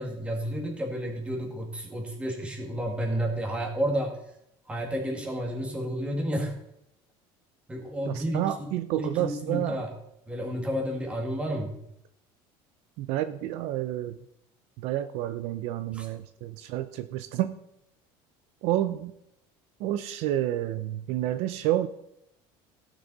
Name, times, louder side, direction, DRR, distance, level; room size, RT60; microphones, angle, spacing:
voice 1, 0.0-4.2 4.7-6.5 7.7-8.7 9.0-9.9 10.3-11.8 15.9-16.1, equal, 10° right, 1 dB, 2.1 m, -31 dB
voice 2, 8.1-9.9 13.0-14.2 14.8-17.5 18.6-19.1 19.8-21.9, right 13 dB, 65° right, 11 dB, 0.6 m, -29 dB
15.5 x 6.4 x 4.1 m, 0.79 s
cardioid pair, 155°, 12 cm